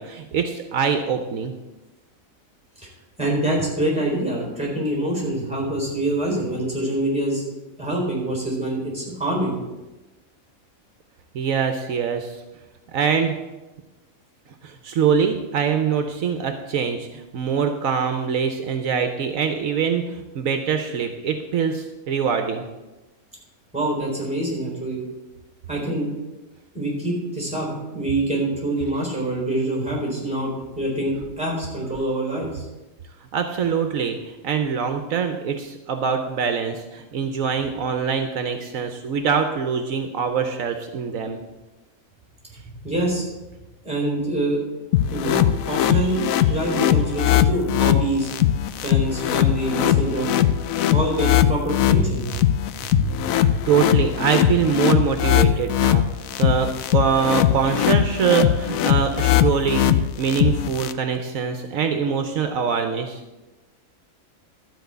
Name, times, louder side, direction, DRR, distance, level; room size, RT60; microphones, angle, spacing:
voice 1, 0.0-1.5 11.3-12.3 12.9-13.4 14.6-22.6 33.3-41.4 45.7-46.1 46.5-46.6 53.7-63.2, right 6 dB, 75° right, 6 dB, 1.2 m, -24 dB
voice 2, 3.2-7.4 7.8-9.5 23.7-25.0 25.7-26.1 26.7-32.7 42.8-43.2 43.8-44.6 45.1-46.2 46.5-48.3 48.8-50.3 50.9-52.4 52.9-53.1, right 1 dB, 5° right, -3 dB, 3.8 m, -25 dB
sound 1, 44.9-60.9, left 11 dB, 80° left, 1.0 m, -20 dB
12.5 x 4.8 x 8.0 m, 1.1 s
omnidirectional pair, 1.4 m